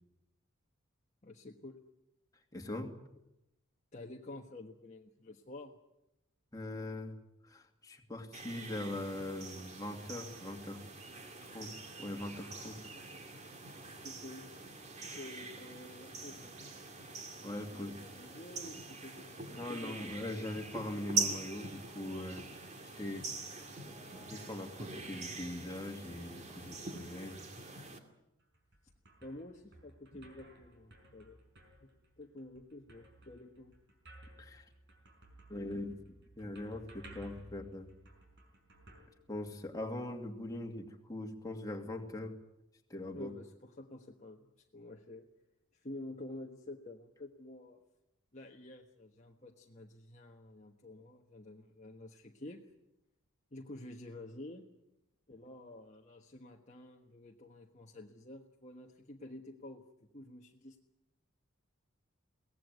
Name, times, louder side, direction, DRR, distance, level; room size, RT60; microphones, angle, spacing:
voice 1, 1.2-1.8 3.9-5.8 14.0-14.5 15.1-16.6 17.7-20.5 29.2-31.4 31.8-31.9 32.2-33.8 43.1-45.3 45.7-47.8 48.3-52.7 53.5-54.7 55.3-59.8 60.1-60.8, left 1 dB, 35° left, 1 dB, 1.4 m, -50 dB
voice 2, 2.5-2.9 6.5-7.2 7.4-10.8 11.4-12.9 15.1-15.2 17.4-18.0 19.5-22.6 23.0-23.3 23.8-27.4 34.4-34.7 35.5-37.9 39.3-42.3 42.9-43.3, left 1 dB, 15° left, 2 dB, 2.4 m, -41 dB
sound 1, 8.3-28.0, right 4 dB, 30° right, 2.5 m, -44 dB
Aluminium cans drum, 28.4-39.9, right 1 dB, 50° right, 5.7 m, -58 dB
23.0 x 18.0 x 9.4 m, 0.89 s
head